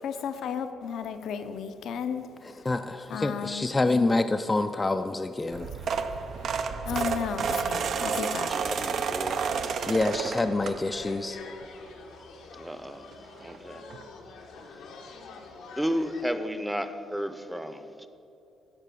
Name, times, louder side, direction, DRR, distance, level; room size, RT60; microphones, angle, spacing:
voice 1, 0.0-2.7 3.1-4.3 6.8-8.5, left 7 dB, 70° left, 0.7 m, -34 dB
voice 2, 2.7-5.7 9.9-11.4, left 2 dB, 20° left, 0.4 m, -27 dB
sound 1, 5.5-11.2 11.6-11.9 13.1-13.2 13.4-13.6 13.9-14.0, right 6 dB, 60° right, 0.6 m, -30 dB
sound 2, 6.3-16.2, left 4 dB, 90° left, 1.1 m, -46 dB
voice 3, 8.5-9.5 12.6-13.1 13.4-13.9 15.7-18.1, equal, 5° right, 0.7 m, -33 dB
13.5 x 5.5 x 6.8 m
cardioid pair, 90°, 0 cm